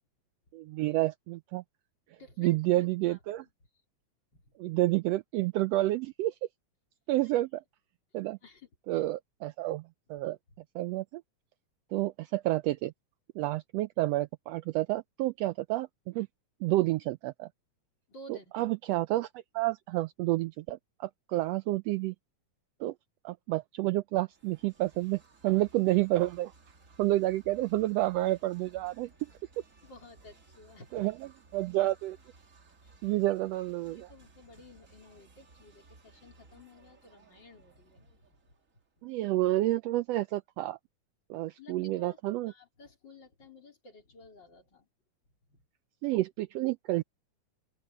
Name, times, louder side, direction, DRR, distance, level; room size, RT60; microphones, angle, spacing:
voice 1, 0.5-1.6 2.4-3.4 4.6-6.3 7.1-7.6 8.1-8.4 8.9-9.8 10.1-10.4 10.7-11.2 11.9-12.9 13.3-16.3 16.6-17.5 18.3-22.1 22.8-22.9 23.2-26.5 27.0-29.1 30.9-31.1 31.5-32.2 33.0-34.1 39.0-40.8 41.3-42.5 46.0-47.0, right 17 dB, 85° right, 1.4 m, -29 dB
voice 2, 2.2-3.5 4.3-4.5 8.4-9.0 18.1-18.5 29.8-31.1 31.8-31.9 32.8-33.0 33.8-38.1 41.6-42.2 42.5-44.9 45.5-45.6, left 2 dB, 35° left, 4.4 m, -54 dB
sound 1, 24.3-39.0, right 3 dB, 30° right, 2.1 m, -60 dB
open air
omnidirectional pair, 3.4 m